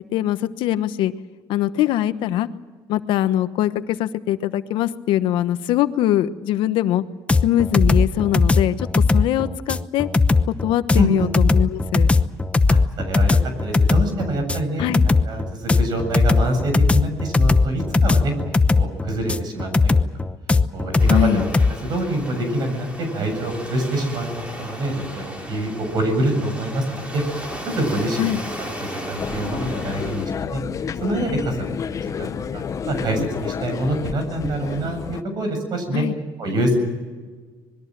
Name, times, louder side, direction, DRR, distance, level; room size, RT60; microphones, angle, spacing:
voice 1, 0.1-1.1 1.5-2.5 2.9-7.0 7.4-10.1 10.6-12.1 14.8-15.0 21.1-21.4 28.2-28.4 35.9-36.1, left 12 dB, 80° left, 12 dB, 1.2 m, -22 dB
sound 1, 7.3-21.7, left 3 dB, 15° left, 0.9 m, -18 dB
voice 2, 10.9-11.3 12.7-12.8 13.1-14.8 15.3-18.3 18.8-19.9 20.7-21.4 21.8-24.3 24.6-27.2 27.7-28.4 28.8-30.6 31.0-31.6 31.8-36.0 36.4-36.8, right 1 dB, 55° right, 6 dB, 7.5 m, -25 dB
Waves surf, 21.0-30.3, equal, 15° right, 5.5 m, -35 dB
sound 2, 29.2-35.2, left 7 dB, 40° left, 1.0 m, -30 dB
26.0 x 21.5 x 7.7 m, 1.4 s
cardioid pair, 110°, 8 cm